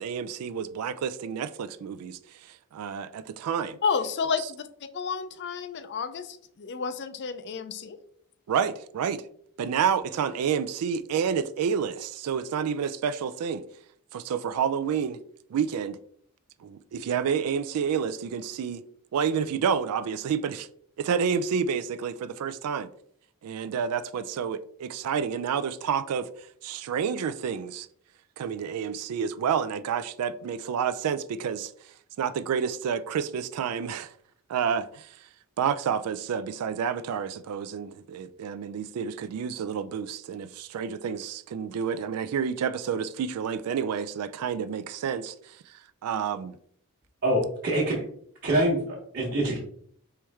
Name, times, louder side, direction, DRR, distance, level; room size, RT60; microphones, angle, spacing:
voice 1, 0.0-3.8 4.4-4.5 8.5-9.2 9.6-13.6 14.1-15.2 15.5-16.0 16.6-18.8 19.1-20.7 21.0-22.9 23.4-26.3 26.6-27.9 28.4-31.7 32.2-34.1 34.5-35.2 35.6-45.6 46.0-46.6, right 7 dB, 80° right, 0.3 m, -29 dB
voice 2, 3.8-4.7 4.9-8.0, left 5 dB, 50° left, 0.4 m, -30 dB
voice 3, 47.2-48.0 48.4-49.6, right 1 dB, 45° right, 1.1 m, -25 dB
4.5 x 3.2 x 3.5 m
head